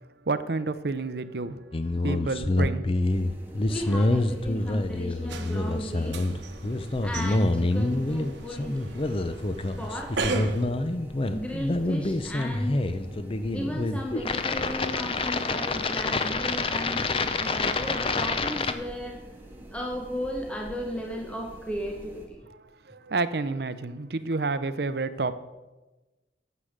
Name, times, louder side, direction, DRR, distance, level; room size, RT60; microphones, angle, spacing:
voice 1, 0.3-1.6 2.0-2.8 22.9-25.3, right 3 dB, 60° right, 13 dB, 0.6 m, -29 dB
sound 1, 1.7-18.7, left 2 dB, 30° left, 0.6 m, -27 dB
sound 2, 3.0-22.3, equal, 10° right, 1.6 m, -47 dB
voice 2, 3.7-6.2 7.0-8.9 9.8-10.1 11.2-12.8 13.5-19.2 19.7-22.4, equal, 5° left, 1 dB, 1.0 m, -35 dB
sound 3, 5.3-10.7, right 4 dB, 80° right, 1.1 m, -37 dB
9.9 x 7.5 x 6.5 m, 1.1 s
head